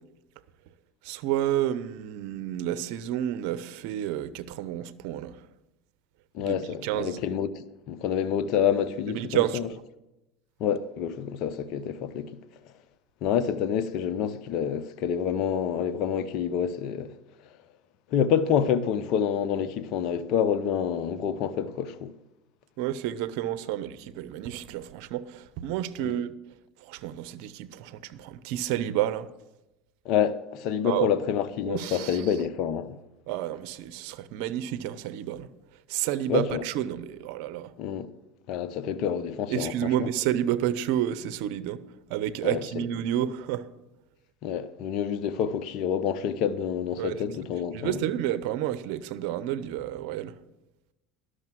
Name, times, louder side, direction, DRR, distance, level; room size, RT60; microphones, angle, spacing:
voice 1, 1.0-5.4 6.5-7.2 9.1-9.6 22.8-26.3 26.9-29.3 30.8-31.1 31.6-32.2 33.3-35.5 35.9-37.7 39.5-41.8 42.1-43.6 47.0-47.2 47.7-50.3, right 12 dB, 70° right, 0.7 m, -30 dB
voice 2, 6.3-9.7 10.6-12.3 13.2-17.1 18.1-22.1 26.0-26.2 30.0-33.0 36.3-36.6 37.8-38.1 38.5-40.1 42.4-42.8 44.4-48.0, left 8 dB, 60° left, 0.7 m, -28 dB
12.0 x 6.5 x 7.5 m
hypercardioid pair, 90°, 0 cm